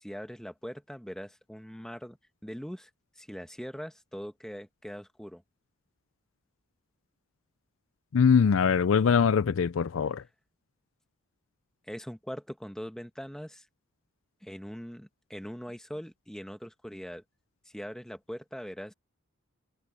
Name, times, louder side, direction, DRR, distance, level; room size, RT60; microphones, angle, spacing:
voice 1, 0.0-2.2 2.4-2.9 3.2-5.4 11.9-13.6 14.4-17.2 17.7-18.9, equal, 5° left, 1.3 m, -41 dB
voice 2, 8.1-10.2, left 6 dB, 70° left, 0.4 m, -22 dB
head